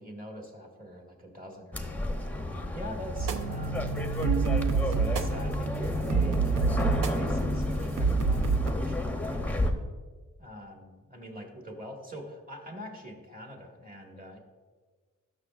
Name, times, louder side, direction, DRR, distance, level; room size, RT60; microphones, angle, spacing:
voice 1, 0.0-4.0 4.7-9.9 10.4-14.4, equal, 25° right, 1 dB, 1.5 m, -44 dB
sound 1, 1.7-9.7, left 2 dB, 5° left, 0.6 m, -32 dB
sound 2, 3.2-8.7, right 5 dB, 85° right, 0.7 m, -28 dB
17.5 x 6.5 x 2.4 m, 1.4 s
wide cardioid pair, 160°, 31 cm